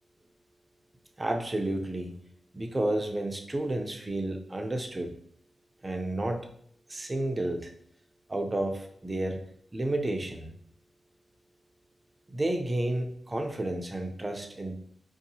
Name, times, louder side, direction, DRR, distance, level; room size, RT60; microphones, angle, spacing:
voice 1, 1.2-2.1 2.5-5.1 5.8-6.5 6.9-7.7 8.3-9.4 9.7-10.5 12.3-14.7, right 1 dB, 20° right, 3 dB, 0.5 m, -31 dB
4.7 x 2.7 x 2.7 m, 0.65 s
wide cardioid pair, 130°, 0 cm